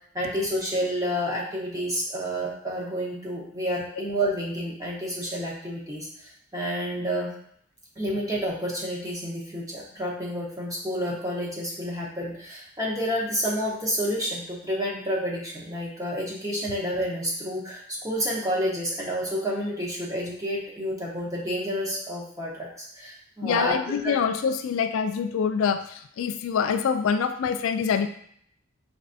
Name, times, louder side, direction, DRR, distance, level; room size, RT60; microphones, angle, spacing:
voice 1, 0.1-7.3 8.0-23.7 24.0-24.2, equal, 15° right, -4 dB, 0.9 m, -29 dB
voice 2, 23.4-28.1, left 6 dB, 80° left, 8 dB, 0.3 m, -25 dB
4.8 x 3.3 x 2.7 m, 0.67 s
head